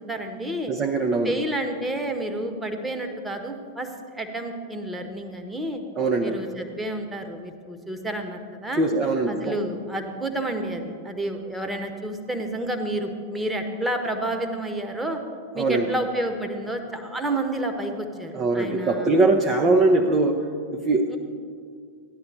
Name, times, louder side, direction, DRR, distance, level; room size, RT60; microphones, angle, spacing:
voice 1, 0.1-0.7 1.2-5.8 6.2-8.8 9.3-15.2 15.5-19.1 21.1-21.2, right 1 dB, 5° right, 3 dB, 1.3 m, -30 dB
voice 2, 0.7-1.4 6.0-6.4 8.8-9.6 15.6-15.9 18.3-20.4 20.7-21.2, right 2 dB, 25° right, 2 dB, 0.8 m, -21 dB
14.5 x 10.5 x 4.3 m, 2.2 s
figure-of-eight pair, 90°, 0 cm